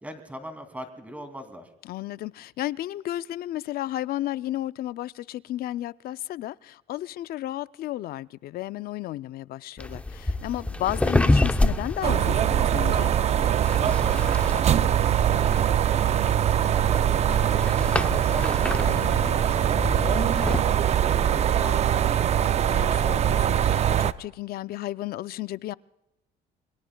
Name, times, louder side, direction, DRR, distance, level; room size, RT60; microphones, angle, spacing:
voice 1, 0.0-1.7 13.9-22.5, equal, 10° right, 2.5 m, -42 dB
voice 2, 1.8-13.1 18.8-19.4 22.7-25.7, left 14 dB, 65° left, 0.5 m, -33 dB
sound 1, 9.8-20.6, left 2 dB, 5° left, 0.7 m, -29 dB
sound 2, 12.0-24.1, right 10 dB, 40° right, 0.5 m, -22 dB
28.0 x 22.5 x 2.3 m
cardioid pair, 110°, 17 cm